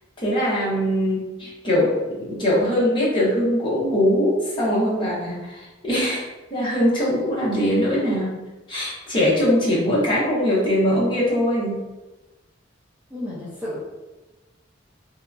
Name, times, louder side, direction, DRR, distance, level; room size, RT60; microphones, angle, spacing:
voice 1, 0.2-6.2 6.5-8.4 8.7-11.8, equal, 25° left, -7 dB, 0.9 m, -21 dB
voice 2, 13.1-13.8, left 1 dB, 10° right, -7 dB, 0.5 m, -32 dB
2.8 x 2.2 x 2.5 m, 1.1 s
head